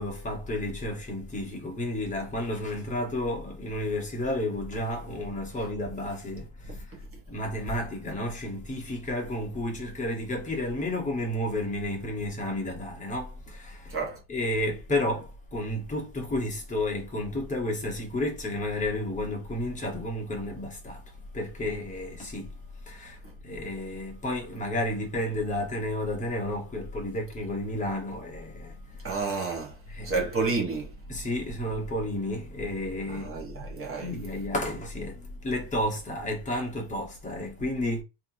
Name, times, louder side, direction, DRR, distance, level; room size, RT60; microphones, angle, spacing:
voice 1, 0.0-7.0 7.3-21.0 21.3-29.2 29.9-30.3 31.1-33.3 33.7-38.0, left 1 dB, 15° left, 1.1 m, -32 dB
voice 2, 13.9-14.2 29.0-29.8 30.0-30.9 33.1-34.1, right 4 dB, 25° right, 1.2 m, -30 dB
3.3 x 2.9 x 2.7 m
cardioid pair, 165°, 49 cm